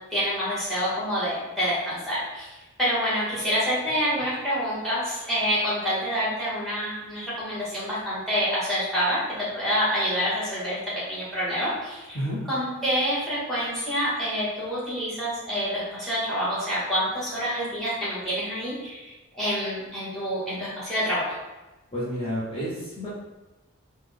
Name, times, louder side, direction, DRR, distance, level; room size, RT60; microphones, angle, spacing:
voice 1, 0.1-10.8 11.1-12.2 12.5-21.3, equal, ahead, -9 dB, 1.2 m, -27 dB
voice 2, 21.9-23.1, equal, 25° left, -10 dB, 0.7 m, -30 dB
3.3 x 2.2 x 3.6 m, 1.1 s
head